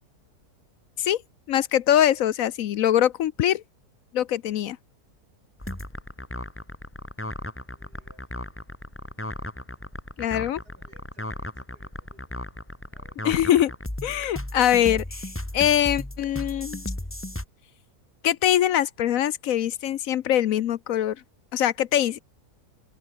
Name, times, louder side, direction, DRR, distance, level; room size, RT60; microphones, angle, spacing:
voice 1, 1.5-3.6 4.1-4.8 10.2-10.6 13.2-13.7 14.0-16.8 18.2-21.2 21.5-22.2, left 11 dB, 65° left, 1.0 m, -23 dB
sound 1, 5.6-17.4, left 1 dB, 10° left, 1.8 m, -35 dB
voice 2, 7.7-8.3 10.4-12.4 12.9-13.2, right 2 dB, 85° right, 7.8 m, -60 dB
open air
omnidirectional pair, 1.6 m